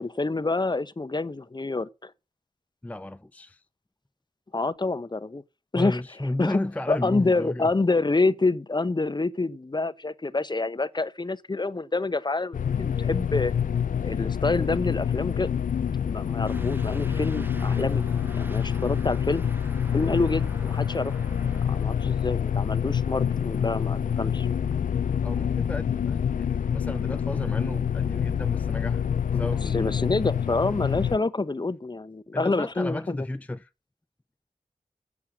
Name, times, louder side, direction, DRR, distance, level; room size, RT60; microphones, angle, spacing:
voice 1, 0.0-2.1 4.5-5.4 5.7-6.0 6.4-6.6 6.9-13.5 14.0-15.5 16.1-18.0 18.3-19.4 19.9-21.2 21.6-24.5 24.7-24.8 29.3-33.2, left 3 dB, 35° left, 0.8 m, -27 dB
voice 2, 2.8-3.6 5.7-7.7 25.2-29.0 29.3-30.0 32.3-33.7, left 1 dB, 10° left, 0.4 m, -33 dB
sound 1, 12.5-31.2, left 8 dB, 90° left, 0.4 m, -27 dB
Truck / Accelerating revving vroom, 16.5-24.4, right 1 dB, 15° right, 1.0 m, -44 dB
8.4 x 7.1 x 6.2 m
cardioid pair, 45°, 13 cm